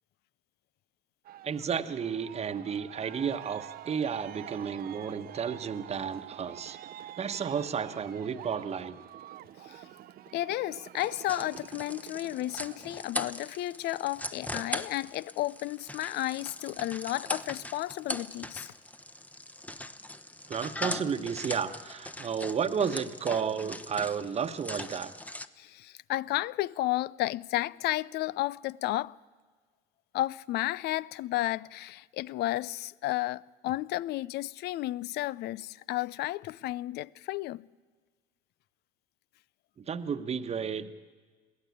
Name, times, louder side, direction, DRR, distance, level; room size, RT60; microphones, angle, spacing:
Aircraft, 1.2-12.9, right 12 dB, 55° right, 0.7 m, -47 dB
voice 1, 1.4-6.8 7.2-9.0 20.5-25.1 39.8-40.9, right 7 dB, 35° right, 1.2 m, -32 dB
voice 2, 10.3-18.7 25.6-29.2 30.1-37.6, left 16 dB, 60° left, 0.5 m, -32 dB
sound 1, 11.0-25.5, left 1 dB, 10° left, 1.0 m, -40 dB
22.5 x 16.0 x 8.5 m
supercardioid pair, 85°, 19 cm